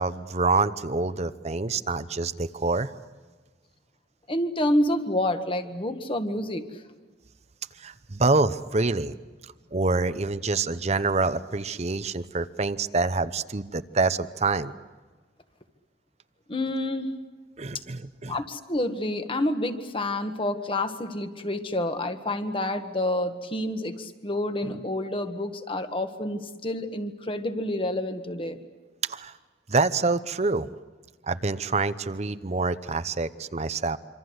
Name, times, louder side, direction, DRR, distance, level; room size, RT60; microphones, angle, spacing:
voice 1, 0.0-2.9 7.8-9.1 9.7-14.7 17.6-18.3 29.0-29.3 29.7-30.7 31.3-34.0, right 3 dB, 35° right, 13 dB, 0.7 m, -26 dB
voice 2, 4.3-6.8 16.5-17.1 18.3-28.6, left 1 dB, 30° left, 8 dB, 1.6 m, -28 dB
26.5 x 26.0 x 8.0 m, 1.4 s
head